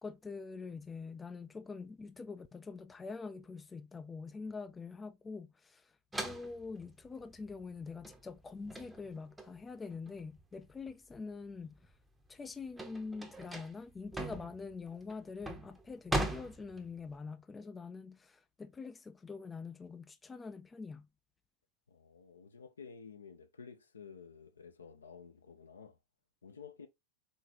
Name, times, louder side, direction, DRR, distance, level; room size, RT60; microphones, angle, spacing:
voice 1, 0.0-6.0 6.2-11.9 12.3-21.1, left 4 dB, 15° left, 0.4 m, -45 dB
sound 1, 6.1-11.1 11.6-17.2, right 1 dB, 10° right, 0.7 m, -40 dB
voice 2, 21.9-26.0 26.4-26.9, left 6 dB, 70° left, 0.6 m, -52 dB
4.4 x 3.2 x 3.0 m
figure-of-eight pair, 90°, 0 cm